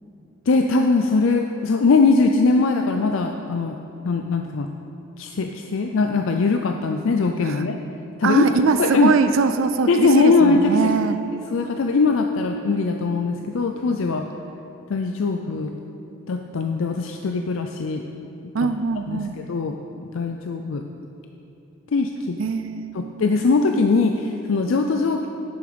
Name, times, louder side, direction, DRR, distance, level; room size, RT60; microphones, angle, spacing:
voice 1, 0.5-3.8 4.0-4.7 5.2-7.8 8.2-9.1 9.9-10.9 11.3-14.3 14.9-15.7 16.3-18.0 18.6-18.7 19.1-20.8 21.9-22.4 22.9-25.3, left 3 dB, 70° left, 4 dB, 0.5 m, -21 dB
voice 2, 8.2-11.2 18.5-19.4 22.4-23.2, right 5 dB, 70° right, 10 dB, 0.4 m, -22 dB
10.5 x 6.9 x 5.0 m, 2.9 s
head